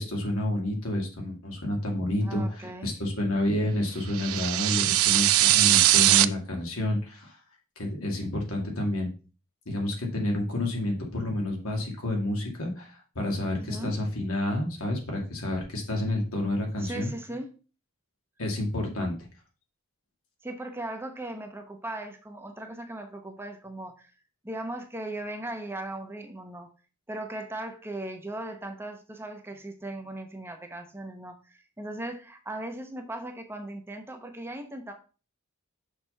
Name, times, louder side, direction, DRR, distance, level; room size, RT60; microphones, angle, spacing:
voice 1, 0.0-7.4 7.8-9.1 9.7-17.1 18.4-19.1, left 1 dB, 85° left, 0 dB, 2.4 m, -29 dB
voice 2, 2.2-2.9 13.5-14.0 16.8-17.5 20.4-24.1 24.4-26.7 27.1-34.9, right 1 dB, 10° right, 5 dB, 0.8 m, -38 dB
sound 1, 4.1-6.2, right 15 dB, 80° right, 0.4 m, -20 dB
6.3 x 4.2 x 5.6 m, 0.35 s
head